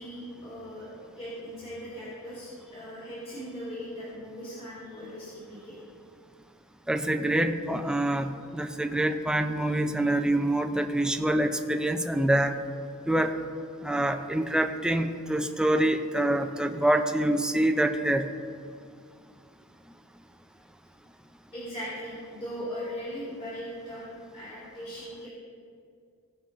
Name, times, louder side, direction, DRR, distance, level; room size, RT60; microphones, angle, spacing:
voice 1, 0.0-5.8 9.6-9.8 21.5-25.3, equal, 25° left, -8 dB, 2.2 m, -39 dB
voice 2, 6.9-12.5 13.1-13.3 13.8-18.3, right 1 dB, 5° right, 7 dB, 0.4 m, -26 dB
16.0 x 5.5 x 3.8 m, 2.3 s
head